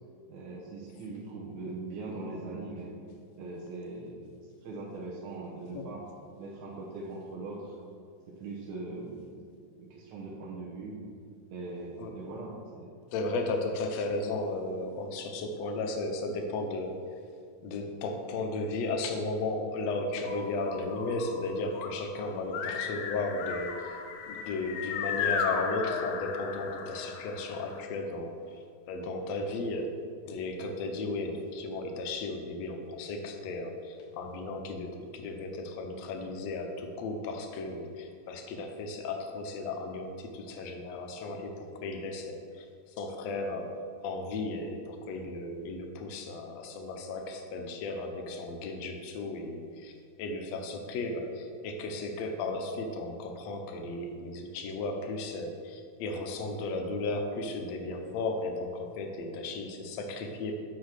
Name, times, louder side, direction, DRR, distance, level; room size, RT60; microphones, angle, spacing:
voice 1, 0.3-2.9 3.4-4.3 4.6-6.0 6.4-7.7 8.4-11.0 11.5-12.9, right 3 dB, 80° right, -4 dB, 2.5 m, -41 dB
voice 2, 13.1-17.0 17.6-23.9 24.3-30.0 30.2-42.7 43.0-43.7 44.0-49.9 50.2-60.5, left 2 dB, 70° left, 3 dB, 1.9 m, -35 dB
sound 1, 20.3-27.8, left 6 dB, 90° left, 2.1 m, -36 dB
6.1 x 6.0 x 6.5 m, 2.3 s
omnidirectional pair, 3.4 m